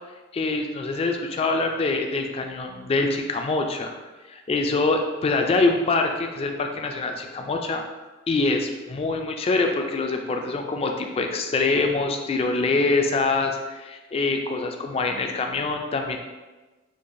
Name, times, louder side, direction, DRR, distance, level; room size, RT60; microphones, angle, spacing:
voice 1, 0.3-4.0 4.3-7.8 8.3-16.2, left 3 dB, 30° left, 4 dB, 0.3 m, -24 dB
4.6 x 2.3 x 2.6 m, 1.2 s
head